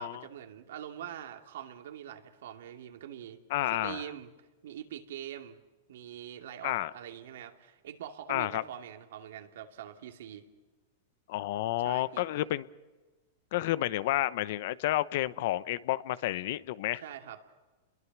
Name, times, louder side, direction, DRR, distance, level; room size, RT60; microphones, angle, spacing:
voice 1, 0.0-3.4 3.7-4.3 4.6-5.6 5.9-10.5 11.8-12.3 17.0-17.4, right 10 dB, 75° right, 5 dB, 2.6 m, -44 dB
voice 2, 3.5-4.0 6.6-6.9 8.3-8.6 11.3-12.7 13.5-17.0, left 15 dB, 60° left, 17 dB, 0.9 m, -30 dB
30.0 x 22.0 x 6.1 m, 1.3 s
hypercardioid pair, 135°, 0 cm